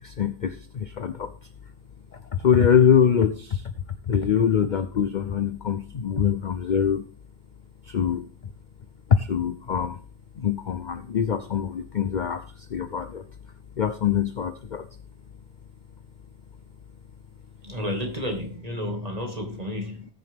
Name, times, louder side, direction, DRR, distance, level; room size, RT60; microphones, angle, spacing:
voice 1, 0.0-1.3 2.1-3.7 4.1-7.1 7.8-8.3 9.1-10.0 10.4-13.2 13.8-14.9, left 8 dB, 60° left, 11 dB, 0.5 m, -23 dB
voice 2, 17.6-20.1, left 1 dB, 25° right, 2 dB, 2.2 m, -31 dB
19.5 x 6.6 x 3.6 m, 0.38 s
omnidirectional pair, 1.6 m